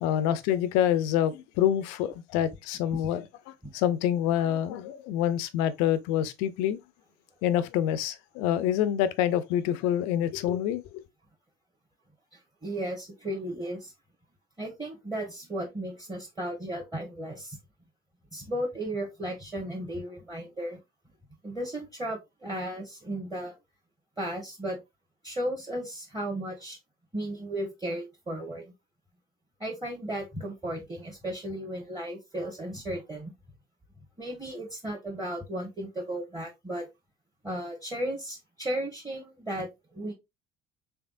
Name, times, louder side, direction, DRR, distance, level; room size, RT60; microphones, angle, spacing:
voice 1, 0.0-6.8 7.4-11.0, left 10 dB, 65° left, 0.6 m, -27 dB
voice 2, 12.3-13.9 14.6-17.6 18.3-20.8 21.4-23.6 24.2-24.8 25.2-26.8 27.1-28.7 29.6-33.3 34.2-36.8 37.4-40.1, right 1 dB, 15° right, 1.3 m, -35 dB
3.4 x 3.4 x 2.5 m
hypercardioid pair, 55°, 29 cm